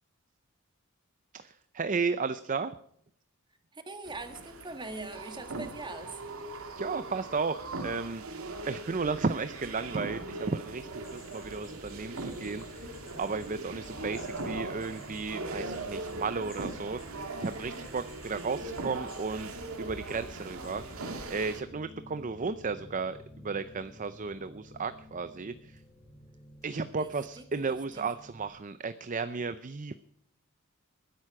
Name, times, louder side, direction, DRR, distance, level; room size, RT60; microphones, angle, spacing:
voice 1, 1.3-2.7 6.8-19.5 19.8-23.2 23.4-25.8 26.6-29.9, right 4 dB, 35° right, 12 dB, 0.6 m, -34 dB
voice 2, 3.7-6.2 27.0-28.1, right 2 dB, 20° right, 7 dB, 1.8 m, -42 dB
sound 1, 4.0-21.6, right 2 dB, 80° right, 2.2 m, -40 dB
sound 2, 10.9-20.9, left 1 dB, 30° left, 4.5 m, -54 dB
sound 3, 12.2-28.5, left 1 dB, 15° left, 7.8 m, -53 dB
20.5 x 11.0 x 4.8 m, 0.68 s
head